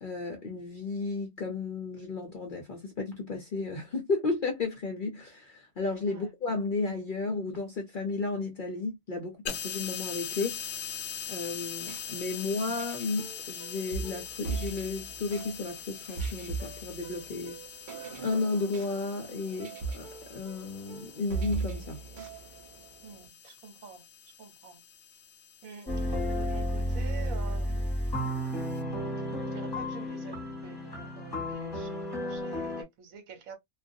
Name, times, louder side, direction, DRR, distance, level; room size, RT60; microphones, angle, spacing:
voice 1, 0.0-10.8 11.3-17.6 18.2-22.0, left 3 dB, 50° left, 0.6 m, -33 dB
sound 1, 9.5-28.8, left 8 dB, 70° left, 0.9 m, -43 dB
sound 2, 11.7-23.3, right 5 dB, 45° right, 0.7 m, -40 dB
voice 2, 23.0-24.0 24.4-24.8 25.6-25.9 26.3-27.9 28.2-28.3 28.8-29.1 29.5-33.6, right 6 dB, 75° right, 1.2 m, -47 dB
sound 3, 25.9-32.8, equal, 20° left, 1.0 m, -32 dB
2.4 x 2.3 x 2.5 m
omnidirectional pair, 1.5 m